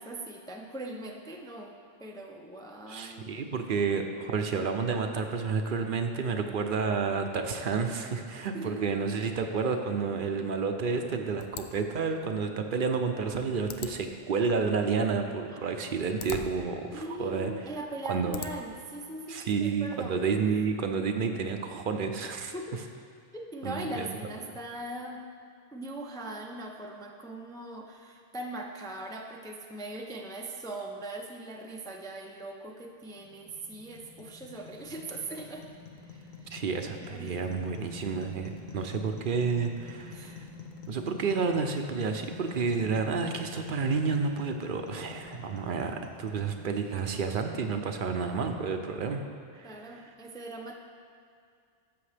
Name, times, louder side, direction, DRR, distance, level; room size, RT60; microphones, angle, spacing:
voice 1, 0.0-1.7 2.0-3.4 8.5-8.8 13.3-13.4 15.5-15.7 16.9-20.4 22.5-23.0 23.3-25.2 25.7-35.7 36.0-36.6 37.0-37.7 40.1-40.4 49.6-50.7, right 1 dB, 5° left, 1 dB, 0.4 m, -40 dB
voice 2, 2.9-17.5 18.1-18.4 19.3-22.5 23.6-24.1 36.5-40.5 40.9-49.3 49.5-50.0, right 5 dB, 60° right, 5 dB, 0.7 m, -30 dB
sound 1, 11.4-18.8, left 7 dB, 80° left, 0.8 m, -46 dB
sound 2, 33.0-48.2, left 5 dB, 50° left, 1.0 m, -47 dB
13.0 x 7.0 x 3.3 m, 2.3 s
omnidirectional pair, 1.0 m